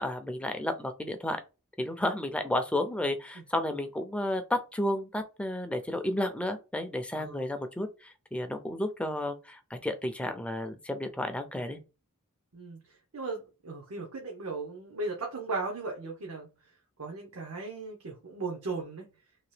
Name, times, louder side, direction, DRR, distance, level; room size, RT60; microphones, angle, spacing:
voice 1, 0.0-1.4 1.8-11.8, left 1 dB, 5° left, 0.4 m, -32 dB
voice 2, 13.1-16.5 17.0-19.0, right 3 dB, 70° right, 0.7 m, -37 dB
2.9 x 2.7 x 3.2 m
head